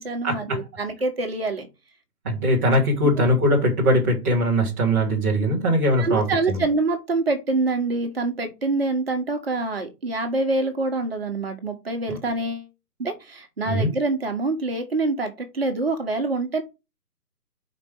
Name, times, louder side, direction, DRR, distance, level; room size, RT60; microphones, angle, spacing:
voice 1, 0.0-1.7 6.0-12.7 13.0-16.6, right 3 dB, 35° right, 1.5 m, -25 dB
voice 2, 2.2-6.6 13.6-13.9, equal, 10° right, 1.2 m, -21 dB
5.2 x 4.4 x 6.0 m
hypercardioid pair, 165°, 49 cm